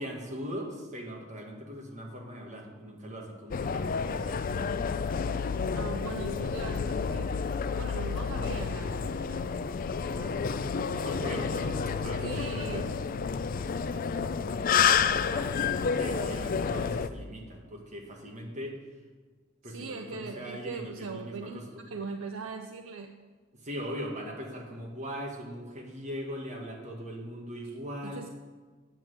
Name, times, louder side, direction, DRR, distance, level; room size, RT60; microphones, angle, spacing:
voice 1, 0.0-4.4 10.9-13.0 15.9-18.8 19.6-21.9 23.6-28.2, equal, 35° right, 0 dB, 1.7 m, -40 dB
sound 1, 3.5-17.1, left 6 dB, 40° left, 0.3 m, -30 dB
voice 2, 5.7-7.5 7.7-9.4 10.2-10.4 12.2-12.9 13.2-13.3 15.3-15.5 19.6-21.6 21.9-23.1 28.0-28.3, right 4 dB, 75° right, 4 dB, 0.6 m, -40 dB
9.1 x 5.9 x 7.9 m, 1.4 s
head